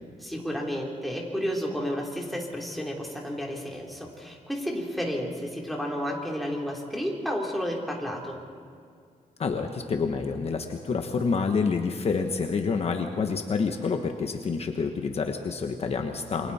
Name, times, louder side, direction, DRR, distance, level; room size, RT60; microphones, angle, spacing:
voice 1, 0.2-8.4, equal, ahead, -2 dB, 3.6 m, -31 dB
voice 2, 9.4-16.5, left 5 dB, 45° left, 5 dB, 1.3 m, -28 dB
28.5 x 24.0 x 4.3 m, 2.2 s
wide cardioid pair, 130°, 14 cm